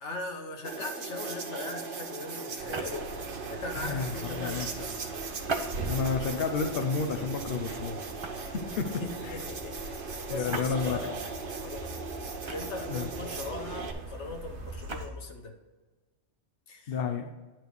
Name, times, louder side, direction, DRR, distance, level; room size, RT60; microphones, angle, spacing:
voice 1, 0.0-3.1 3.5-5.0 9.0-10.0 10.3-11.3 11.6-12.1 12.4-15.6 16.7-17.0, left 3 dB, 85° left, 4 dB, 1.4 m, -40 dB
sound 1, 0.6-13.9, right 4 dB, 50° right, 1.0 m, -39 dB
sound 2, 2.6-3.2 5.4-6.2 6.8-7.1 8.2-8.6 10.5-10.8 12.5-13.0 14.7-15.1, right 3 dB, 30° right, 0.6 m, -37 dB
sound 3, 2.6-15.1, right 2 dB, 75° right, 1.1 m, -42 dB
voice 2, 3.8-4.7 5.9-8.0 8.3-9.4 10.3-11.1 12.9-13.1 16.9-17.3, left 5 dB, 60° left, 7 dB, 0.9 m, -31 dB
10.5 x 3.5 x 6.3 m, 1.3 s
omnidirectional pair, 1.2 m